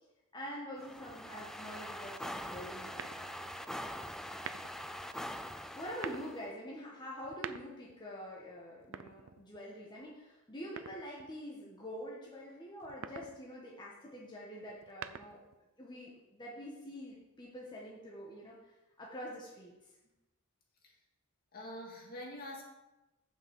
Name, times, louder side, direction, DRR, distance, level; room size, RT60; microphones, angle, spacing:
voice 1, 0.3-3.9 5.7-15.4 15.8-18.6 19.0-19.7, equal, 20° left, -4 dB, 1.6 m, -46 dB
sound 1, 0.8-6.5, equal, ahead, 0.4 m, -43 dB
sound 2, 3.0-3.6 4.3-4.9 5.8-6.3 7.2-8.0 8.8-9.7 10.8-11.4 12.8-13.4 14.7-15.6, right 8 dB, 65° right, 0.5 m, -46 dB
voice 2, 21.5-22.6, left 1 dB, 45° left, -2 dB, 2.2 m, -45 dB
7.3 x 6.2 x 7.2 m, 1.0 s
head